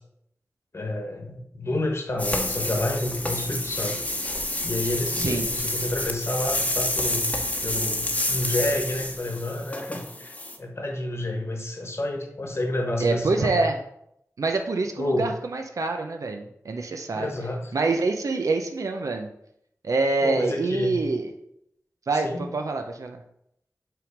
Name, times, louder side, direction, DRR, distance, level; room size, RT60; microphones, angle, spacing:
voice 1, 0.7-4.0 4.6-7.4 7.6-13.6 15.0-15.3 17.1-17.7 20.2-21.0 22.1-22.5, left 1 dB, 50° left, 2 dB, 1.2 m, -29 dB
sound 1, 2.2-10.6, left 1 dB, 25° left, 0.9 m, -29 dB
voice 2, 5.2-5.5 13.0-13.8 14.4-17.3 17.7-19.3 19.8-21.3 22.1-23.2, right 3 dB, 85° right, 4 dB, 0.6 m, -26 dB
5.6 x 3.7 x 5.0 m, 0.74 s
wide cardioid pair, 85°, 5 cm